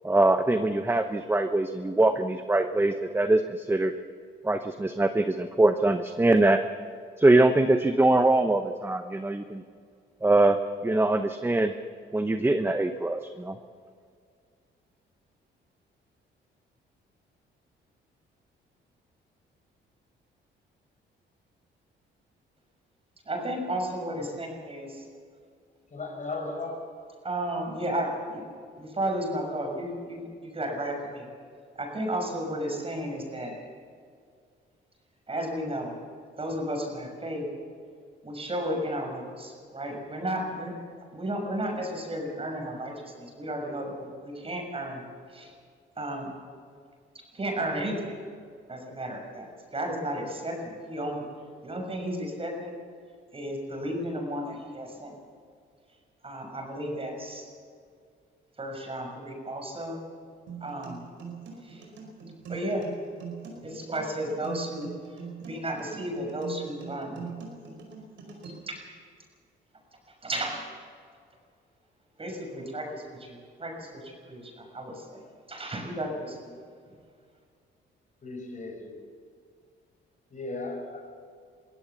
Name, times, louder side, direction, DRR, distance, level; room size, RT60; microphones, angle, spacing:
voice 1, 0.0-3.9 4.4-6.6 7.2-9.6 10.2-10.6 10.8-11.7 12.1-13.5, right 2 dB, 10° right, 8 dB, 0.9 m, -23 dB
voice 2, 23.3-25.0 27.2-28.4 28.8-31.3 31.8-33.5 35.3-35.9 36.4-37.5 38.2-40.7 41.1-45.0 45.3-45.5 46.0-46.3 47.3-48.2 48.7-51.2 51.6-52.7 53.3-55.2 56.2-57.5 58.6-60.0 60.6-61.0 61.6-61.8 62.5-62.9 63.6-64.9 65.4-67.2 68.4-68.8 70.2-70.7 72.2-75.2 75.5-76.5 76.9-77.0, right 1 dB, 30° right, 2 dB, 6.3 m, -33 dB
voice 3, 25.9-26.9 78.2-79.1 80.3-81.2, left 2 dB, 40° left, 3 dB, 5.4 m, -36 dB
sound 1, 60.5-68.5, right 6 dB, 75° right, 5.2 m, -42 dB
23.0 x 16.0 x 7.1 m, 2.2 s
cardioid pair, 90°, 20 cm